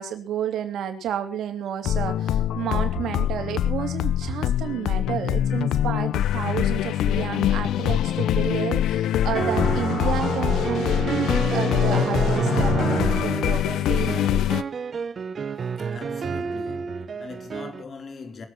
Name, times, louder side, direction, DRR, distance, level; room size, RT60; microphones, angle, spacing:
voice 1, 0.0-14.4, right 10 dB, 75° right, 3.0 m, -31 dB
sound 1, 1.8-14.6, left 11 dB, 80° left, 0.8 m, -24 dB
sound 2, 9.3-17.8, right 6 dB, 45° right, 1.1 m, -29 dB
voice 2, 15.8-18.5, left 4 dB, 45° left, 4.5 m, -40 dB
22.5 x 8.2 x 5.9 m
cardioid pair, 90°, 0 cm